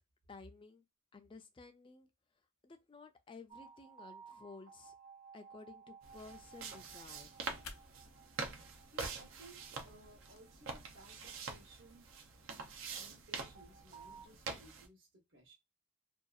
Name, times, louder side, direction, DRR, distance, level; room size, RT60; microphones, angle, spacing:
voice 1, 0.3-0.8 1.1-2.1 2.6-4.9 5.3-7.4, left 3 dB, 25° left, 0.3 m, -54 dB
sound 1, 3.5-12.6 13.5-14.3, right 6 dB, 35° right, 0.6 m, -58 dB
sound 2, 6.0-14.9, right 4 dB, 80° right, 0.5 m, -46 dB
sound 3, 6.5-10.5, left 4 dB, 90° left, 0.5 m, -55 dB
voice 2, 8.9-12.1 12.6-15.5, right 1 dB, 60° right, 0.9 m, -60 dB
2.6 x 2.3 x 2.3 m
head